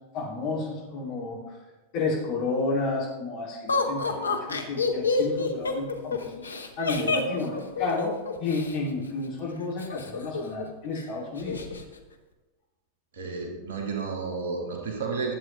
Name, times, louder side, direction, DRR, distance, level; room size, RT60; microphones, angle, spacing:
voice 1, 0.1-1.4 1.9-6.5 6.8-11.6, left 3 dB, 40° left, -4 dB, 2.7 m, -31 dB
Laughter, 3.7-8.7 9.8-10.6 10.9-11.0 11.4-11.8, left 4 dB, 75° left, 0.7 m, -28 dB
voice 2, 13.1-15.3, right 4 dB, 60° right, 1 dB, 1.6 m, -32 dB
11.0 x 7.7 x 3.3 m, 1.2 s
figure-of-eight pair, 90°, 0 cm